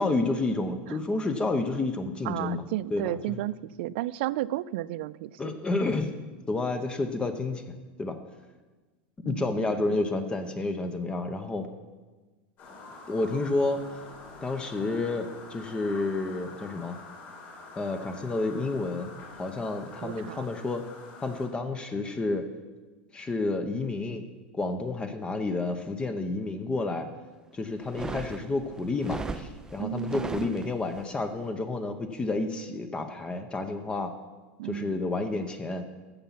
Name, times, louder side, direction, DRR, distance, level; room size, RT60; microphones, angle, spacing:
voice 1, 0.0-3.4 5.4-6.2 6.5-7.7 8.0-8.2 9.2-11.7 13.1-13.8 14.4-17.0 17.8-19.1 19.4-20.8 21.2-22.5 23.1-24.2 24.5-27.1 27.5-34.1 34.6-35.8, left 3 dB, 15° left, 8 dB, 0.8 m, -30 dB
voice 2, 2.3-5.5 9.2-9.7 20.0-20.5 29.8-30.4 34.6-34.9, right 14 dB, 70° right, 19 dB, 0.4 m, -33 dB
sound 1, 12.6-21.5, left 3 dB, 45° left, 3.5 m, -46 dB
sound 2, 27.8-31.0, right 3 dB, 10° right, 0.5 m, -37 dB
15.0 x 5.7 x 5.8 m, 1.3 s
supercardioid pair, 130°, 6 cm